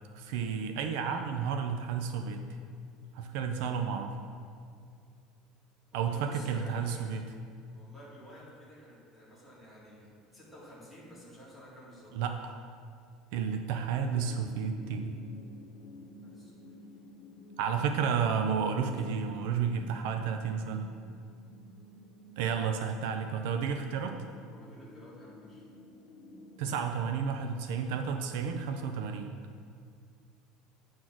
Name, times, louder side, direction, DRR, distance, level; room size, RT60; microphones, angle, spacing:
voice 1, 0.2-2.4 3.1-4.1 5.9-7.2 12.1-12.6 13.3-15.2 17.6-20.9 22.4-24.2 26.6-29.3, right 6 dB, 70° right, 6 dB, 0.5 m, -32 dB
voice 2, 5.9-7.1 7.7-12.1 16.2-17.0 24.5-25.6, equal, ahead, -8 dB, 2.0 m, -52 dB
sound 1, 14.1-26.7, left 1 dB, 25° left, 1.0 m, -52 dB
9.3 x 4.3 x 5.9 m, 2.3 s
cardioid pair, 170°, 0 cm